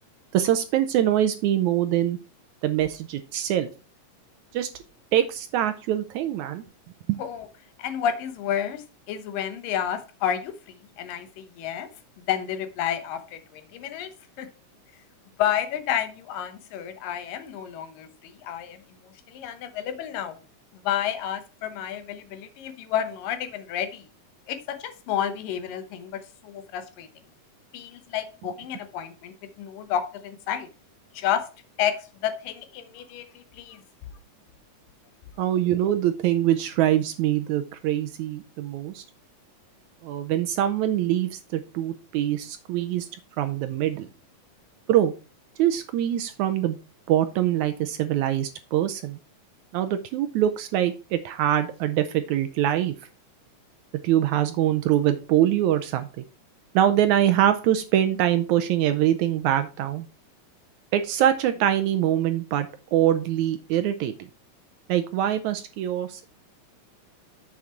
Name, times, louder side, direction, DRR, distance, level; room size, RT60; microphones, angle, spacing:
voice 1, 0.3-2.2 2.6-3.7 4.5-4.7 5.1-6.6 7.1-7.2 35.4-39.0 40.0-43.1 43.4-44.1 44.9-45.1 45.6-46.8 47.1-49.2 49.7-52.9 54.0-56.1 56.7-60.1 60.9-64.1 64.9-66.3, right 11 dB, 75° right, 10 dB, 1.8 m, -24 dB
voice 2, 7.8-8.8 9.1-10.5 11.0-11.9 12.3-14.1 14.4-14.5 15.4-18.8 19.0-20.4 20.8-24.1 24.5-26.1 26.4-27.1 27.7-30.7 31.1-31.5 31.8-33.8, left 9 dB, 85° left, 9 dB, 2.8 m, -30 dB
7.2 x 6.3 x 4.4 m, 0.33 s
omnidirectional pair, 3.8 m